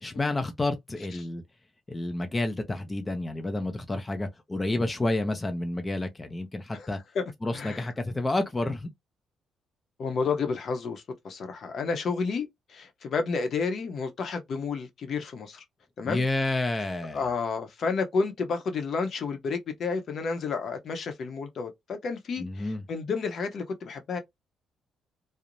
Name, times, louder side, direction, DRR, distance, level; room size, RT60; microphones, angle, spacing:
voice 1, 0.0-1.4 1.9-7.0 7.4-8.9 16.0-17.3 22.4-22.8, left 2 dB, 20° left, 0.5 m, -30 dB
voice 2, 7.5-7.9 10.0-15.6 16.0-16.2 17.1-24.2, left 4 dB, 60° left, 0.7 m, -31 dB
2.5 x 2.0 x 2.9 m
cardioid pair, 90°, 0 cm